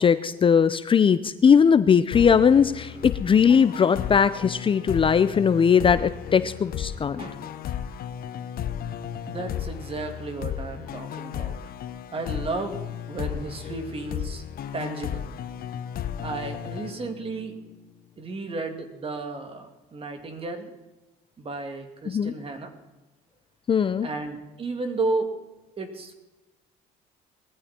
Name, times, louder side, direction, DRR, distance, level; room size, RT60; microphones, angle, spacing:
voice 1, 0.0-7.2 22.1-22.3 23.7-24.1, left 7 dB, 30° left, 13 dB, 0.6 m, -19 dB
sound 1, 2.1-17.6, left 9 dB, 60° left, 0.9 m, -34 dB
voice 2, 7.2-7.5 9.3-11.6 12.1-14.4 14.7-15.3 16.2-17.6 18.2-20.7 21.4-22.7 24.0-25.3 25.8-26.1, right 3 dB, 35° right, 6 dB, 2.5 m, -33 dB
20.0 x 14.5 x 4.4 m, 1.1 s
cardioid pair, 110°, 17 cm